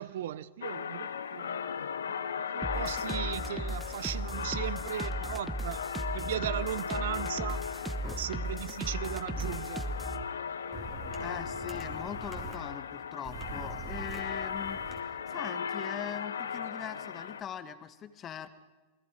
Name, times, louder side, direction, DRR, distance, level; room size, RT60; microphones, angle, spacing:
voice 1, 0.0-5.8 6.1-7.7 8.0-9.9, right 12 dB, 70° right, 0.7 m, -37 dB
sound 1, 0.6-17.4, left 7 dB, 85° left, 0.9 m, -37 dB
sound 2, 2.6-10.2, right 1 dB, 10° right, 1.2 m, -37 dB
sound 3, 8.0-8.1 9.4-9.6 10.7-12.6 13.2-15.0, right 4 dB, 25° right, 3.5 m, -43 dB
voice 2, 11.2-14.8 15.1-18.5, left 9 dB, 30° left, 1.6 m, -41 dB
28.0 x 20.0 x 5.1 m
hypercardioid pair, 105°, 0 cm